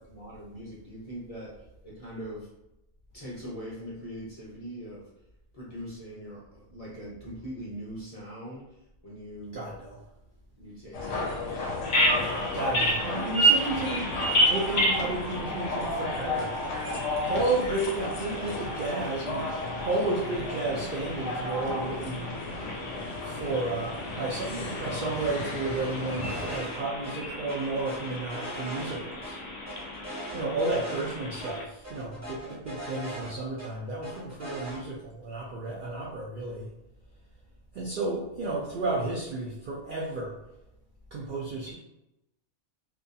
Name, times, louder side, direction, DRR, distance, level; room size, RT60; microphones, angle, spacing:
voice 1, 0.0-1.5 1.8-2.5 3.1-5.1 5.5-8.8 9.0-9.8 10.6-11.7 32.4-32.6, equal, 40° left, -7 dB, 0.6 m, -42 dB
voice 2, 9.5-10.0 12.1-14.1 14.4-16.5 17.0-19.5 19.8-22.3 23.2-29.4 30.3-36.7 37.7-40.4 41.1-41.7, right 2 dB, 70° right, -3 dB, 0.4 m, -32 dB
sound 1, 10.9-26.6, left 2 dB, 70° left, 0.9 m, -34 dB
Bird vocalization bird call bird song, 11.8-31.6, right 1 dB, 85° left, 0.3 m, -32 dB
sound 2, 26.2-26.8 27.0-27.1 27.5-29.3 29.7-31.1 31.4-31.5 31.8-33.7 34.0-34.8, right 1 dB, 20° right, 0.5 m, -40 dB
2.7 x 2.3 x 2.6 m, 0.90 s
omnidirectional pair, 1.4 m